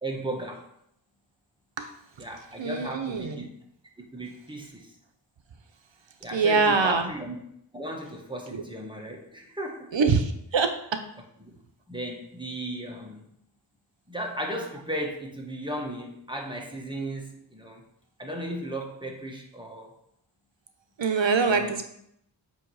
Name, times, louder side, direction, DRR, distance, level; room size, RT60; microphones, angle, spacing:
voice 1, 0.0-0.7 2.2-3.5 4.0-4.9 6.2-7.3 7.7-9.9 11.4-11.6 11.9-13.3 14.1-17.8 18.2-19.9 21.5-21.8, right 1 dB, 10° right, 0 dB, 1.5 m, -35 dB
voice 2, 2.6-3.5 6.3-7.1 8.5-8.6 9.9-11.0 21.0-21.8, right 4 dB, 70° right, 7 dB, 0.8 m, -24 dB
7.5 x 3.1 x 4.8 m, 0.73 s
wide cardioid pair, 40°, 46 cm